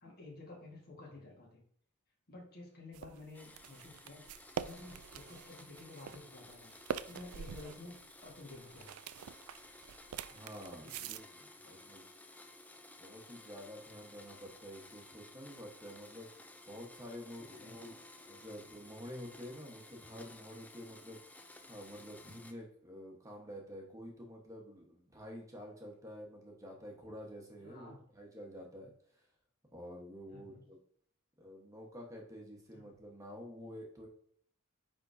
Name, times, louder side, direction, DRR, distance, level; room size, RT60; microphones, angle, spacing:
voice 1, 0.0-1.6 2.3-4.2 4.6-6.7 7.0-8.0 8.2-8.9 10.8-11.2 11.6-11.8 17.4-18.9 27.6-28.0 30.3-30.6 32.7-32.9, left 2 dB, 45° left, -1 dB, 1.6 m, -52 dB
sound 1, 2.9-11.2, right 8 dB, 80° right, 0.3 m, -45 dB
Domestic sounds home sounds, 3.3-22.5, left 2 dB, 5° left, 0.3 m, -56 dB
voice 2, 10.3-12.0 13.0-21.2 21.6-29.3 29.7-30.8 31.4-34.1, equal, 15° right, 0 dB, 1.2 m, -49 dB
9.6 x 3.7 x 2.7 m, 0.63 s
head